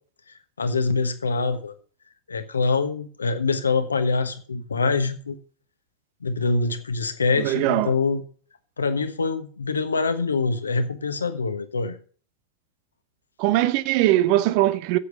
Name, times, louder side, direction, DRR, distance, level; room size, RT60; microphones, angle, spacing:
voice 1, 0.6-1.7 2.3-5.4 6.2-8.2 8.8-12.0, left 4 dB, 75° left, 1.3 m, -24 dB
voice 2, 7.4-7.9 13.4-15.0, right 15 dB, 45° right, 0.8 m, -21 dB
8.3 x 8.0 x 8.2 m
figure-of-eight pair, 90°, 0 cm